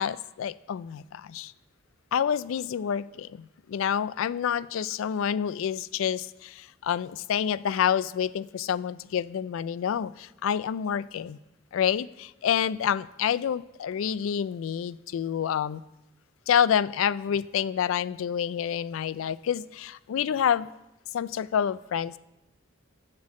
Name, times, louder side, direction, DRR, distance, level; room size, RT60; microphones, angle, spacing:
voice 1, 0.0-1.5 2.1-11.4 11.7-15.8 16.5-20.7 21.1-22.2, left 8 dB, 80° left, 18 dB, 0.3 m, -28 dB
7.4 x 6.3 x 7.5 m, 0.93 s
head